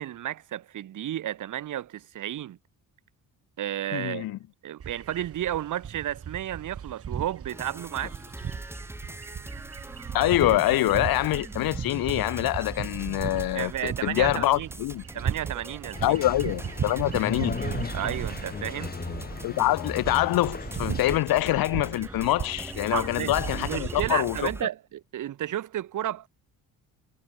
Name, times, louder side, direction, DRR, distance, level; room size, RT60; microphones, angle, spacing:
voice 1, 0.0-2.6 3.6-4.3 4.6-8.1 13.5-14.7 15.1-16.2 17.9-19.0 22.9-26.3, right 12 dB, 60° right, 1.9 m, -32 dB
voice 2, 3.9-4.4 10.1-15.0 16.0-17.6 19.4-24.5, left 16 dB, 85° left, 1.3 m, -25 dB
sound 1, 4.8-24.1, right 8 dB, 40° right, 7.7 m, -37 dB
sound 2, 7.5-24.6, right 1 dB, 5° right, 2.5 m, -42 dB
sound 3, 15.9-21.2, left 5 dB, 25° left, 2.7 m, -37 dB
cardioid pair, 155°, 35 cm